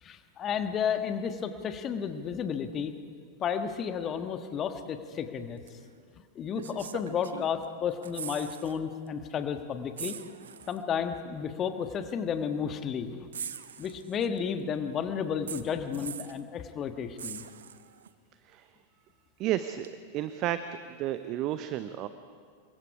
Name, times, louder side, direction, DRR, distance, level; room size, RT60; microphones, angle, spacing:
voice 1, 0.0-2.9 3.4-5.6 6.3-10.2 10.7-13.3 13.8-17.4, left 7 dB, 30° left, 8 dB, 1.5 m, -32 dB
sound 1, 5.7-5.8 6.5-7.6 7.9-8.8 9.1-9.2 10.0-10.8 11.9-12.0 13.3-14.4 15.5-16.4 17.2-18.1 19.8-19.9, right 8 dB, 65° right, 0.8 m, -41 dB
voice 2, 19.4-20.6 21.0-22.1, right 13 dB, 40° right, 11 dB, 0.7 m, -32 dB
27.5 x 22.5 x 4.9 m, 2.1 s
figure-of-eight pair, 90°, 0 cm